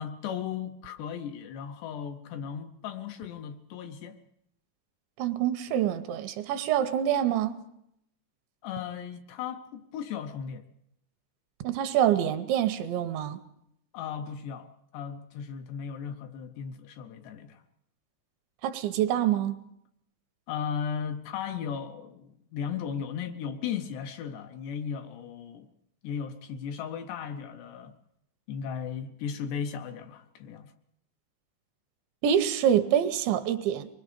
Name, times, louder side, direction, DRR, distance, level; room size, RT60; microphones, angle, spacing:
voice 1, 0.0-4.2 8.6-10.7 13.9-14.7 14.9-17.6 20.5-25.7 26.0-28.0 28.5-30.7, left 7 dB, 75° left, 2.8 m, -36 dB
voice 2, 5.2-7.6 11.6-13.4 18.6-19.6 32.2-33.9, right 10 dB, 80° right, 3.0 m, -26 dB
24.5 x 21.0 x 5.1 m
omnidirectional pair, 5.5 m